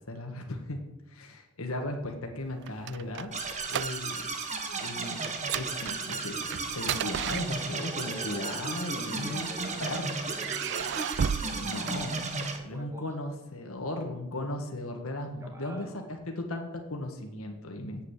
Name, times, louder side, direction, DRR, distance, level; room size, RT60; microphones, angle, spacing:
voice 1, 0.1-0.8 1.1-3.3 3.7-4.2 4.7-5.2 5.5-9.4 9.8-10.1 11.5-12.2 12.6-18.0, left 1 dB, 65° left, 3 dB, 1.6 m, -36 dB
sound 1, 2.4-4.3 4.6-4.8 5.2-8.0 8.9-9.8 10.3-12.6, right 8 dB, 50° right, 0.3 m, -35 dB
sound 2, 3.3-12.6, right 4 dB, 30° right, 1.4 m, -34 dB
voice 2, 7.0-7.4 7.8-12.1 12.6-13.1 15.4-16.1, right 1 dB, 15° right, 3 dB, 1.8 m, -45 dB
8.5 x 8.5 x 8.3 m, 0.95 s
head